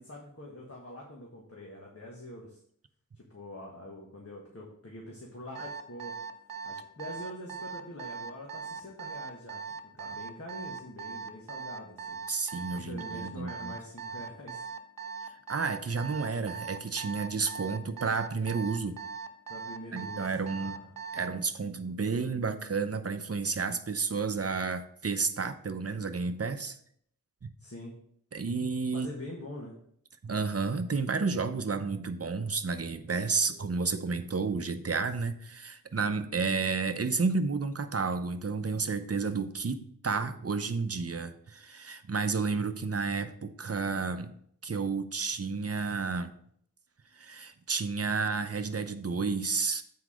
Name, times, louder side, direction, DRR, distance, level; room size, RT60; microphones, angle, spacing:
voice 1, 0.0-2.6 3.1-6.1 6.6-9.6 10.0-12.2 12.7-14.6 19.5-20.9 27.6-27.9 28.9-29.7, left 1 dB, 45° left, -2 dB, 1.5 m, -44 dB
Alarm, 5.5-21.4, right 6 dB, 80° right, 0.8 m, -40 dB
voice 2, 12.3-13.8 15.5-18.9 19.9-20.8 21.1-26.8 27.4-27.5 28.3-29.1 30.2-44.4 44.6-46.3 47.1-49.8, right 4 dB, 45° right, 9 dB, 0.7 m, -31 dB
8.0 x 4.7 x 5.0 m, 0.66 s
wide cardioid pair, 60°, 33 cm